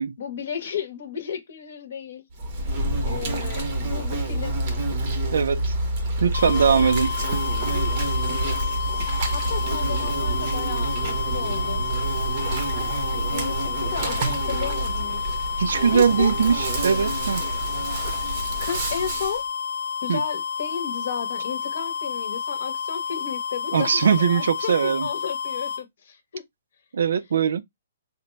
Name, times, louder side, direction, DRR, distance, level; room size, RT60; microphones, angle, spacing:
voice 1, 0.2-2.2 3.0-4.6 6.4-6.9 8.3-8.4 9.3-11.8 13.1-15.2 15.9-16.3 18.6-19.4 20.0-26.4, left 7 dB, 50° left, 0.8 m, -33 dB
Insect, 2.4-19.4, right 2 dB, 30° right, 0.6 m, -27 dB
voice 2, 5.3-5.7 6.2-7.2 15.6-17.4 20.1-20.2 23.7-25.1 26.9-27.6, right 6 dB, 65° right, 0.3 m, -21 dB
sound 1, 6.3-25.8, left 6 dB, 80° left, 0.3 m, -30 dB
3.9 x 2.1 x 3.1 m
hypercardioid pair, 175°, 0 cm